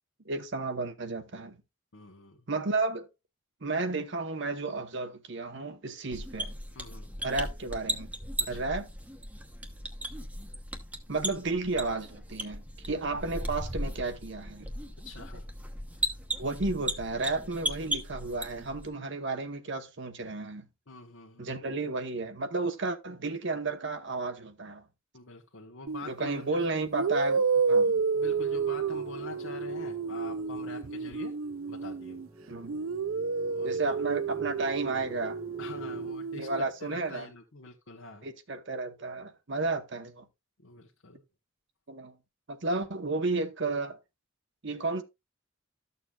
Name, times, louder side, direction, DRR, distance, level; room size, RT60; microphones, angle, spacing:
voice 1, 0.3-1.6 2.5-3.1 3.6-6.5 7.2-8.1 8.5-8.9 11.1-14.7 16.4-20.6 21.4-24.8 26.1-27.9 32.5-32.8 33.6-35.4 36.3-37.3 38.2-40.2 41.9-42.1 42.5-44.0 44.6-45.0, right 3 dB, 60° right, 1.0 m, -32 dB
voice 2, 1.9-2.4 6.7-7.1 8.4-8.7 15.0-15.5 15.9-16.2 20.9-21.7 25.1-26.6 27.8-31.3 31.7-32.2 33.4-33.8 35.6-38.3 40.6-41.2, left 3 dB, 70° left, 1.1 m, -46 dB
sound 1, 6.1-18.9, right 1 dB, 5° right, 0.9 m, -37 dB
sound 2, 25.9-26.1 26.9-32.3 32.7-36.6, right 5 dB, 80° right, 0.5 m, -30 dB
sound 3, 28.2-36.1, right 1 dB, 20° right, 1.2 m, -48 dB
13.0 x 6.8 x 2.3 m
head